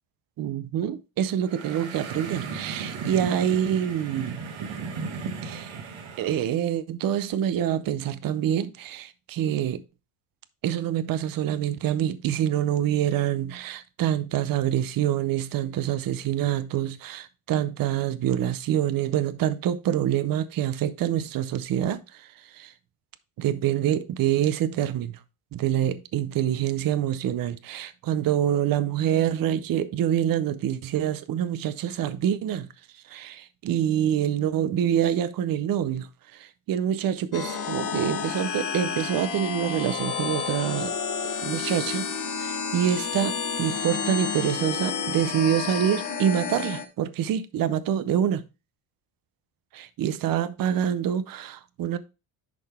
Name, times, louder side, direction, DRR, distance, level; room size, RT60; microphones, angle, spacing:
voice 1, 0.4-4.4 5.4-5.7 6.2-9.8 10.6-22.3 22.5-22.7 23.4-25.2 25.5-32.7 33.1-36.1 36.3-40.9 41.4-42.1 42.4-48.4 49.7-52.0, right 10 dB, 45° right, 0.5 m, -26 dB
sound 1, 1.4-6.4, right 5 dB, 70° right, 1.6 m, -35 dB
sound 2, 37.3-46.9, left 6 dB, 40° left, 1.0 m, -30 dB
11.0 x 3.8 x 3.4 m
cardioid pair, 160°, 50 cm